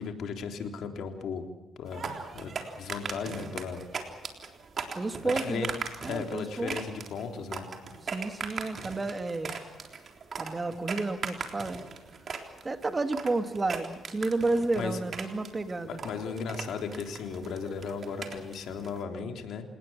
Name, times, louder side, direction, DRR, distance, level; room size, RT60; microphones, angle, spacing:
voice 1, 0.0-1.5 1.8-3.8 5.2-5.7 6.1-7.7 14.8-15.0 15.8-19.6, left 6 dB, 70° left, 4 dB, 3.5 m, -36 dB
sound 1, 1.9-19.0, right 5 dB, 50° right, 3.7 m, -39 dB
voice 2, 5.0-5.7 6.0-6.8 8.1-9.6 10.4-11.8 12.6-16.0, right 3 dB, 25° right, 8 dB, 2.2 m, -31 dB
28.5 x 19.0 x 7.6 m, 1.0 s
cardioid pair, 90°, 0 cm